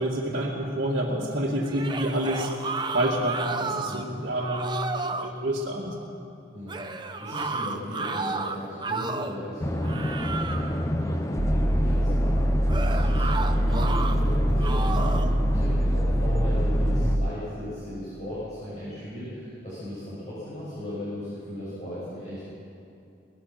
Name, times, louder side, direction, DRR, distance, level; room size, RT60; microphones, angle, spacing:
voice 1, 0.0-2.5 2.9-5.9, right 1 dB, 55° right, -6 dB, 2.4 m, -28 dB
sound 1, 1.6-4.1 4.4-5.3 6.7-9.4 9.8-10.8 12.7-14.2 14.6-15.3, right 3 dB, 20° right, 0.8 m, -32 dB
voice 2, 3.9-4.2 6.5-22.4, left 1 dB, 35° left, -11 dB, 7.0 m, -37 dB
sound 2, 9.6-17.2, left 1 dB, 15° left, 0.7 m, -29 dB
sound 3, 11.4-17.3, equal, 75° right, 1.1 m, -24 dB
22.5 x 19.5 x 6.0 m, 2.6 s
head